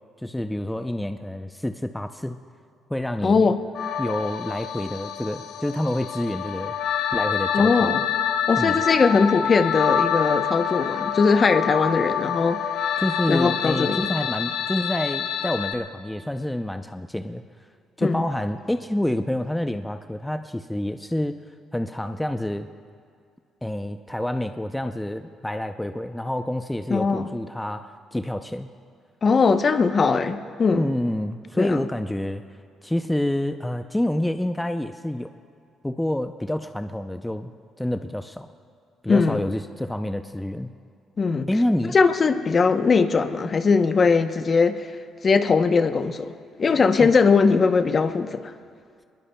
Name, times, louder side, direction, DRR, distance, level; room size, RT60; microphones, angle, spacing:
voice 1, 0.2-2.4 2.9-3.5 4.0-6.7 7.1-7.9 8.6-8.8 13.0-17.4 18.0-21.4 21.7-22.7 23.6-28.7 30.7-32.4 32.8-35.3 35.8-37.5 37.8-38.5 39.0-40.7 41.5-42.0 47.0-47.1, left 1 dB, 5° left, 8 dB, 0.5 m, -28 dB
voice 2, 3.2-3.6 7.5-8.0 8.5-12.6 13.3-14.0 18.0-18.2 26.9-27.2 29.2-30.9 31.6-31.8 39.1-39.4 41.2-41.5 41.9-44.9 45.2-46.3 46.6-48.4, left 4 dB, 40° left, 9 dB, 0.8 m, -20 dB
sound 1, 3.7-15.7, left 8 dB, 70° left, 0.9 m, -27 dB
23.0 x 21.0 x 2.2 m, 2.2 s
cardioid pair, 95°, 0 cm